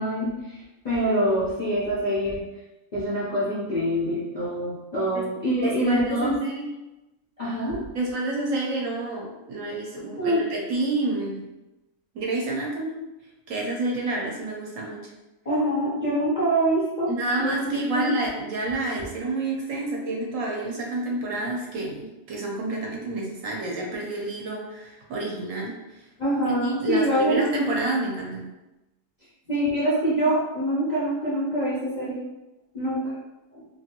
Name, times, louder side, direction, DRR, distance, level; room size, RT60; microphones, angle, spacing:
voice 1, 0.0-2.4 2.9-6.4 7.4-7.8 10.2-10.4 15.4-17.1 17.4-18.1 26.2-27.4 29.5-32.2 32.7-33.2 33.5-33.7, right 1 dB, 45° left, -10 dB, 0.5 m, -25 dB
voice 2, 5.6-6.7 7.9-11.4 12.1-12.9 13.5-15.1 17.1-26.0 26.6-28.5, right 2 dB, 65° right, -2 dB, 1.0 m, -29 dB
2.8 x 2.5 x 2.8 m, 1.0 s
omnidirectional pair, 1.5 m